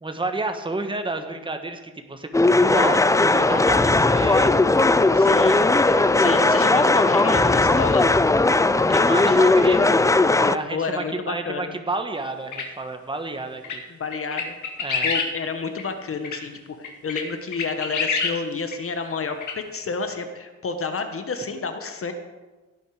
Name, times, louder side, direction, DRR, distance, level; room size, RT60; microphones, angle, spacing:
voice 1, 0.0-4.5 5.7-6.8 8.9-10.0 10.3-13.8 14.8-15.1, right 2 dB, 15° right, 6 dB, 1.3 m, -30 dB
sound 1, 2.3-10.6, left 2 dB, 10° left, 0.4 m, -18 dB
voice 2, 5.1-8.1 10.7-11.7 13.9-14.5 15.0-19.4 19.7-22.1, left 4 dB, 50° left, 7 dB, 1.3 m, -30 dB
sound 2, 12.5-12.6 13.6-13.8 14.1-15.3 15.8-15.9 16.2-16.4 16.8-17.2 17.5-18.3 18.7-18.8 19.4-19.5, left 5 dB, 80° left, 2.1 m, -26 dB
17.0 x 9.1 x 4.9 m, 1.2 s
wide cardioid pair, 125°, 30 cm